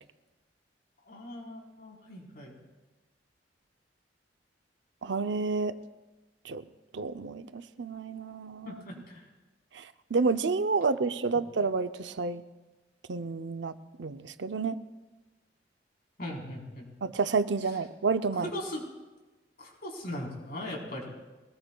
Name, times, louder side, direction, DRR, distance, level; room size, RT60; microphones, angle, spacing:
voice 1, 1.1-2.5 8.6-9.3 16.2-16.9 18.3-18.8 19.6-21.1, left 1 dB, 60° left, -2 dB, 4.1 m, -39 dB
voice 2, 5.0-5.8 6.4-6.6 6.9-8.8 9.7-9.8 10.1-12.4 13.1-13.7 14.0-14.8 17.0-18.5, right 4 dB, 85° right, 11 dB, 0.6 m, -29 dB
23.5 x 18.5 x 2.3 m, 1.2 s
head